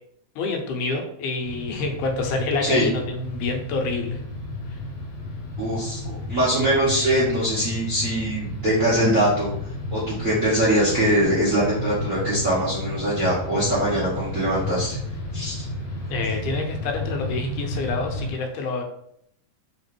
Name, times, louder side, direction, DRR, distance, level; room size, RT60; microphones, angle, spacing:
voice 1, 0.4-4.2 4.7-4.8 16.1-18.8, left 3 dB, 85° left, 3 dB, 2.2 m, -27 dB
sound 1, 1.4-18.3, left 2 dB, 55° left, 1.7 m, -32 dB
voice 2, 5.6-9.5 9.9-15.0 15.3-15.6, right 1 dB, 80° right, -9 dB, 0.7 m, -22 dB
4.7 x 2.9 x 3.1 m, 0.72 s
omnidirectional pair, 3.5 m